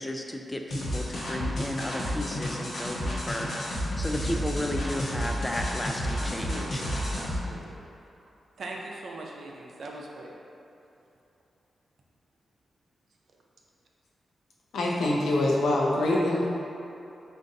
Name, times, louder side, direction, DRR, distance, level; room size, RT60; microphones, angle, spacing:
voice 1, 0.0-6.8, left 1 dB, 15° left, 3 dB, 0.3 m, -34 dB
sound 1, 0.7-7.4, equal, 70° left, 0.9 m, -31 dB
voice 2, 6.2-7.8 8.6-10.3 16.3-16.5, right 2 dB, 70° right, -1 dB, 0.5 m, -41 dB
voice 3, 14.7-16.5, left 1 dB, 85° left, -3 dB, 0.6 m, -24 dB
3.7 x 2.6 x 3.8 m, 2.8 s
cardioid pair, 70°, 0 cm